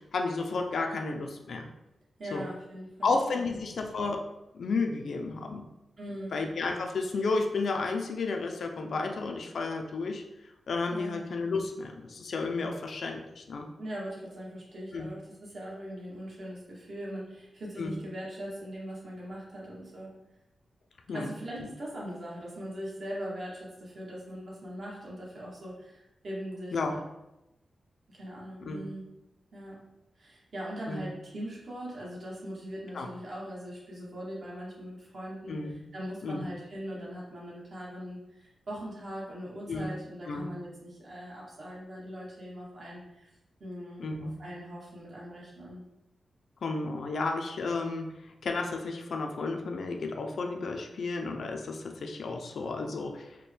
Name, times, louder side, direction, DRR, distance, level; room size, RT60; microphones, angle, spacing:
voice 1, 0.0-1.7 2.3-2.4 3.0-4.2 4.5-5.7 6.3-10.2 10.7-13.7 14.9-15.1 17.8-18.0 21.1-21.3 21.6-21.7 26.7-27.0 28.6-28.8 30.9-31.1 32.9-33.1 35.5-35.7 36.2-36.5 39.7-39.9 40.3-40.5 44.0-44.3 46.6-48.1 48.4-53.4, left 3 dB, 65° left, 4 dB, 0.4 m, -32 dB
voice 2, 2.2-3.6 6.0-6.4 10.9-11.2 13.8-20.1 21.1-27.0 28.1-29.1 29.5-29.8 30.2-43.3 43.6-45.8, equal, 50° right, -4 dB, 1.2 m, -41 dB
4.3 x 2.2 x 3.3 m, 0.91 s
wide cardioid pair, 140°, 0 cm